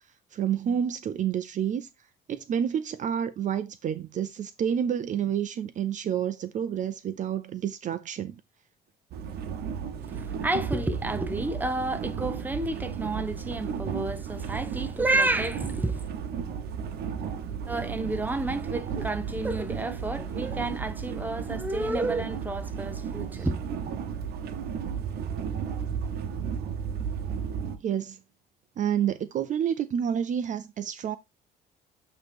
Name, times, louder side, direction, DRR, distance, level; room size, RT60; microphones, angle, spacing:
voice 1, 0.3-1.9 2.3-8.3 23.4-23.5 27.8-28.2 28.8-31.2, right 9 dB, 50° right, 0.6 m, -29 dB
sound 1, 9.1-27.8, right 7 dB, 70° right, 1.0 m, -34 dB
voice 2, 10.0-16.1 17.7-23.6, right 2 dB, 10° right, 1.0 m, -30 dB
8.8 x 3.1 x 4.3 m
cardioid pair, 110°, 17 cm